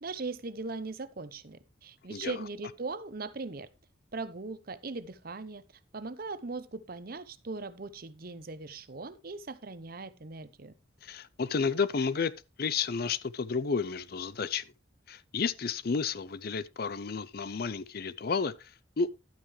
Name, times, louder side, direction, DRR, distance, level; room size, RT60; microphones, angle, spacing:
voice 1, 0.0-3.7 4.1-5.6 5.9-10.7, right 3 dB, 45° right, 0.8 m, -39 dB
voice 2, 11.0-12.3 12.6-14.6 15.1-19.1, left 5 dB, 50° left, 0.5 m, -31 dB
11.5 x 9.0 x 3.1 m
head